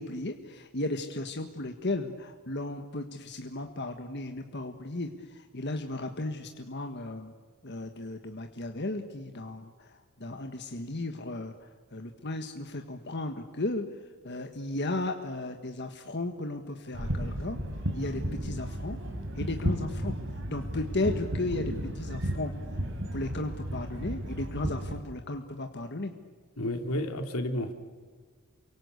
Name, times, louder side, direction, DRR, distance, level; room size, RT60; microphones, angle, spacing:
voice 1, 0.0-7.3 7.6-11.5 11.9-13.9 14.2-17.6 17.9-19.0 19.3-20.2 20.5-22.5 23.1-26.1, left 2 dB, 50° left, 5 dB, 1.6 m, -35 dB
sound 1, 16.9-25.0, equal, 60° right, 4.3 m, -34 dB
voice 2, 26.6-27.7, left 1 dB, 80° left, 6 dB, 3.2 m, -31 dB
29.0 x 24.5 x 8.3 m, 1.5 s
head